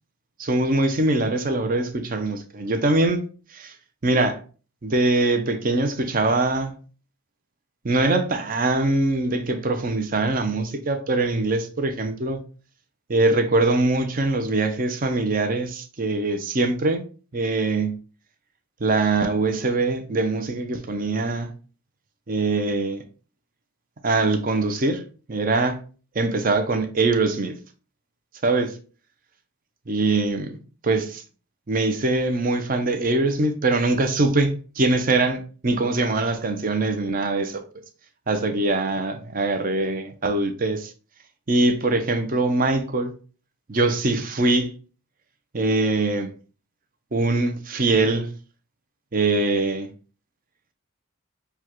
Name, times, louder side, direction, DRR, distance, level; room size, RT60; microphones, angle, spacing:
voice 1, 0.4-3.2 3.5-3.7 4.0-4.4 4.8-6.7 7.8-12.4 13.1-17.0 17.3-18.0 18.8-21.5 22.3-23.0 24.0-25.0 25.3-25.8 26.1-27.6 28.4-28.8 29.9-30.6 30.8-31.2 31.7-37.6 38.3-40.9 41.5-43.1 43.7-44.7 45.5-46.3 47.1-48.3 49.1-49.9, right 2 dB, 40° right, 0.6 m, -22 dB
6.8 x 2.3 x 3.0 m
head